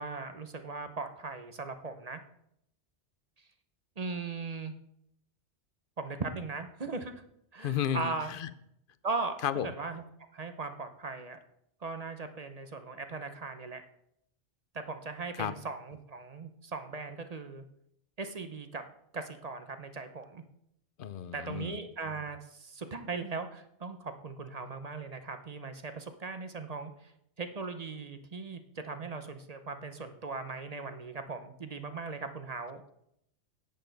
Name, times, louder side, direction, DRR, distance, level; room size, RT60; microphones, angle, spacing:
voice 1, 0.0-2.2 4.0-4.7 6.0-7.1 7.5-8.3 9.0-9.4 9.8-10.0 10.3-11.4 11.8-13.8 14.7-17.7 18.2-18.8 19.1-20.4 21.3-32.8, right 4 dB, 40° right, 8 dB, 0.8 m, -39 dB
voice 2, 7.6-8.5 9.4-9.7 15.3-15.5 21.0-21.7, left 9 dB, 55° left, 14 dB, 0.7 m, -33 dB
10.5 x 8.8 x 4.0 m, 0.74 s
omnidirectional pair, 1.2 m